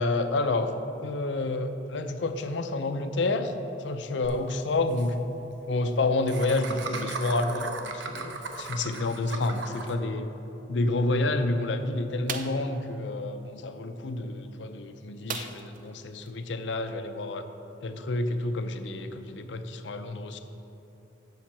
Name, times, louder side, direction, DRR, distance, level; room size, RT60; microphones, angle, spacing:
voice 1, 0.0-3.5 3.8-5.2 5.7-10.3 10.7-17.4 17.8-20.4, left 2 dB, 70° left, 8 dB, 0.6 m, -29 dB
Laughter, 4.2-4.3 4.6-4.7 4.9-5.1 6.3-9.9, right 3 dB, 75° right, 0.8 m, -36 dB
sound 1, 12.3-12.7 15.3-15.9 16.2-16.3 16.7-16.9, right 7 dB, 50° right, 0.5 m, -36 dB
7.4 x 5.7 x 7.2 m, 3.0 s
head